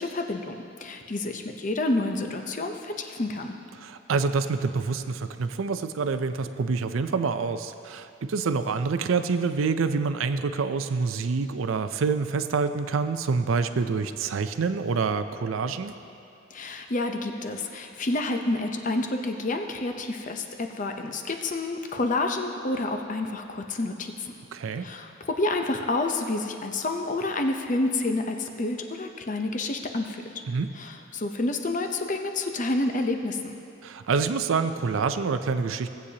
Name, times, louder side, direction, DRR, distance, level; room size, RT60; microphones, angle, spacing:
voice 1, 0.0-3.6 16.5-24.3 24.8-30.2 30.8-33.5, left 2 dB, 40° left, 4 dB, 0.7 m, -29 dB
voice 2, 3.8-15.9 24.5-24.9 30.5-30.7 33.8-35.9, right 4 dB, 85° right, 10 dB, 0.5 m, -27 dB
18.0 x 8.2 x 2.8 m, 2.8 s
head